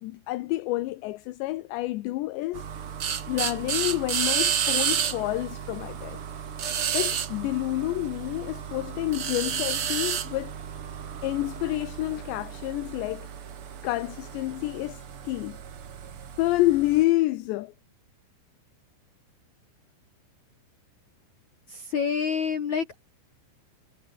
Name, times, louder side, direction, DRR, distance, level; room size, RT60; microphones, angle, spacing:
voice 1, 0.0-2.7 3.3-6.2 6.9-10.6 11.2-13.3 13.8-15.6 16.4-17.7, left 18 dB, 75° left, 2.9 m, -28 dB
sound 1, 2.5-17.0, right 8 dB, 75° right, 1.2 m, -32 dB
voice 2, 21.7-23.0, left 6 dB, 50° left, 2.6 m, -28 dB
omnidirectional pair, 5.7 m